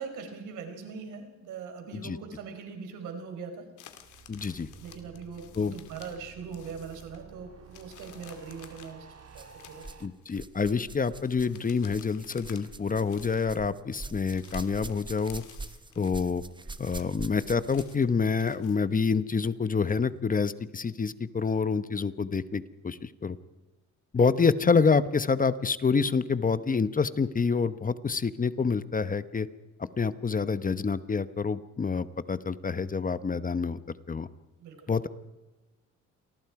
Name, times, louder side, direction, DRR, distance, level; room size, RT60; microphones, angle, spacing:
voice 1, 0.0-3.7 4.5-4.6 4.8-9.8 16.5-16.6 34.6-34.9, right 5 dB, 90° right, 5 dB, 4.5 m, -41 dB
sound 1, 3.8-6.3 6.5-7.3 7.7-10.4 11.2-12.7 13.0-13.6 14.0-16.3 16.6-18.8, left 10 dB, 80° left, 2.4 m, -54 dB
sound 2, 3.9-10.1, right 7 dB, 55° right, 2.2 m, -52 dB
voice 2, 4.3-4.7 5.5-5.7 10.0-15.4 16.0-16.4 16.8-23.4 24.1-29.5 30.0-33.8 34.1-34.3 34.9-35.1, left 5 dB, 30° left, 14 dB, 1.0 m, -27 dB
sound 3, 8.5-8.6 9.3-10.1 10.3-18.1 19.1-19.2 19.9-20.0, right 3 dB, 15° right, 1.1 m, -44 dB
28.0 x 20.0 x 4.8 m, 1.1 s
cardioid pair, 90°, 30 cm